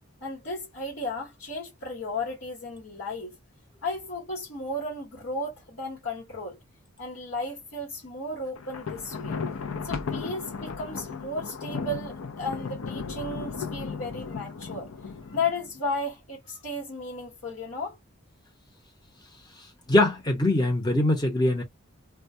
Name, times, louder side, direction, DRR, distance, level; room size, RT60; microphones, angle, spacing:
voice 1, 0.2-3.4 3.8-6.6 7.0-9.4 9.8-14.9 15.3-18.0, left 2 dB, 65° left, 1.2 m, -34 dB
Thunder, 8.6-15.8, left 5 dB, 85° left, 0.5 m, -35 dB
voice 2, 19.9-21.6, left 1 dB, 20° left, 0.9 m, -22 dB
2.2 x 2.2 x 2.6 m
head